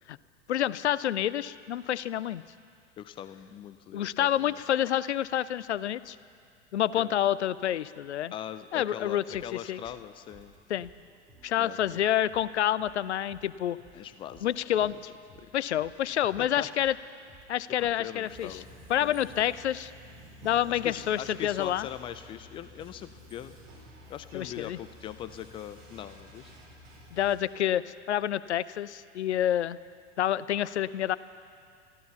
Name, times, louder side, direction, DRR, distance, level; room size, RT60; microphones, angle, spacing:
voice 1, 0.5-2.4 3.9-6.2 6.7-8.3 8.7-9.8 10.7-10.9 11.4-13.8 14.4-15.0 15.5-16.9 17.5-18.6 18.9-19.9 20.4-21.9 24.3-24.8 27.1-29.8 30.2-31.2, left 11 dB, 70° left, 18 dB, 0.5 m, -28 dB
voice 2, 3.0-4.6 7.0-7.1 8.3-10.5 11.6-12.0 13.9-15.0 15.4-15.5 16.2-16.7 17.7-18.7 19.0-19.5 20.7-23.5 24.1-26.5, left 10 dB, 15° left, 11 dB, 0.3 m, -42 dB
sound 1, 9.0-19.5, right 3 dB, 15° right, 3.4 m, -59 dB
sound 2, 18.2-27.4, left 1 dB, 50° right, 4.3 m, -51 dB
14.5 x 12.5 x 7.0 m, 2.3 s
figure-of-eight pair, 90°, 35 cm